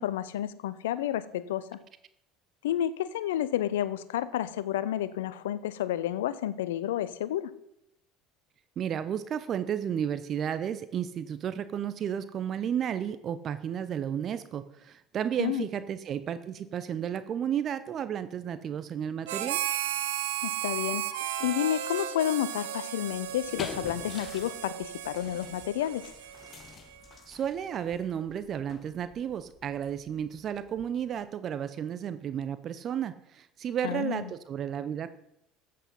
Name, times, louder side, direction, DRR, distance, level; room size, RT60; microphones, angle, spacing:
voice 1, 0.0-1.8 2.6-7.5 15.4-15.7 20.4-21.0 21.4-26.1 33.8-34.3, left 12 dB, 70° left, 17 dB, 0.7 m, -30 dB
voice 2, 8.8-19.6 27.3-35.1, right 9 dB, 40° right, 13 dB, 0.7 m, -33 dB
Harmonica, 19.3-27.0, right 11 dB, 70° right, 0.9 m, -35 dB
sound 1, 23.1-31.2, left 6 dB, 35° left, 1.1 m, -47 dB
14.0 x 8.5 x 5.5 m, 0.81 s
figure-of-eight pair, 65°, 0 cm